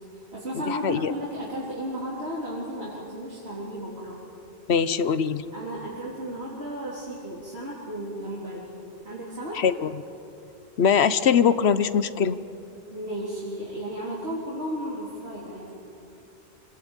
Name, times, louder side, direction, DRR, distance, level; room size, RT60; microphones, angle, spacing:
voice 1, 0.1-4.2 5.5-8.7 9.0-9.6 12.9-15.7, right 1 dB, 70° right, -6 dB, 3.8 m, -34 dB
voice 2, 0.7-1.1 4.7-5.4 9.5-9.9 10.8-12.4, left 7 dB, 80° left, 13 dB, 1.2 m, -22 dB
27.0 x 18.5 x 9.1 m, 2.8 s
omnidirectional pair, 1.1 m